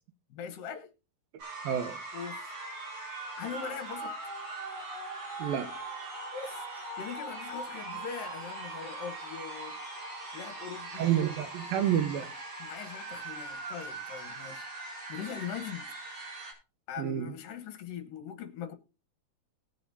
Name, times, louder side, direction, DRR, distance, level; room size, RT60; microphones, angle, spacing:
voice 1, 0.3-0.9 2.1-2.5 3.4-4.2 6.3-11.1 12.6-16.3 16.9-18.7, left 7 dB, 70° left, 2.8 m, -42 dB
sound 1, 1.4-16.5, right 2 dB, 50° right, 5.6 m, -41 dB
voice 2, 1.6-2.0 5.4-5.7 11.0-12.3 17.0-17.3, right 10 dB, 75° right, 2.8 m, -29 dB
19.5 x 7.0 x 2.7 m
omnidirectional pair, 4.3 m